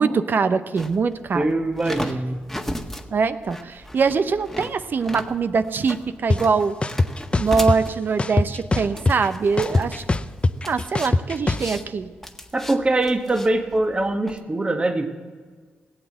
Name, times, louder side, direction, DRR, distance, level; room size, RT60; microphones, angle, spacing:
voice 1, 0.0-1.5 3.1-6.8 7.3-10.0 10.7-12.1, right 5 dB, 55° right, 12 dB, 0.8 m, -23 dB
sound 1, 0.8-14.4, equal, 5° left, 1.5 m, -36 dB
voice 2, 1.3-2.4 12.5-15.2, right 2 dB, 30° right, 5 dB, 1.5 m, -23 dB
sound 2, 6.3-6.4 6.8-7.8 8.2-9.3 9.6-11.7, left 2 dB, 25° left, 0.7 m, -21 dB
17.5 x 8.2 x 7.9 m, 1.5 s
supercardioid pair, 55°, 4 cm